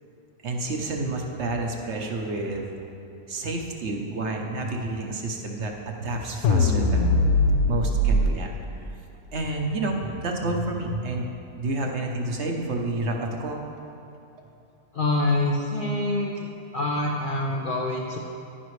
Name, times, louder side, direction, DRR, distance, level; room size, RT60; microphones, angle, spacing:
voice 1, 0.4-2.7 3.3-7.2 7.7-8.5 9.3-11.2 11.6-13.6, right 2 dB, 55° right, 1 dB, 1.0 m, -29 dB
sound 1, 6.4-8.3, left 2 dB, 90° left, 1.2 m, -20 dB
voice 2, 14.9-16.5 16.7-18.2, left 2 dB, 55° left, 0 dB, 0.5 m, -25 dB
10.5 x 10.0 x 3.2 m, 2.7 s
omnidirectional pair, 1.6 m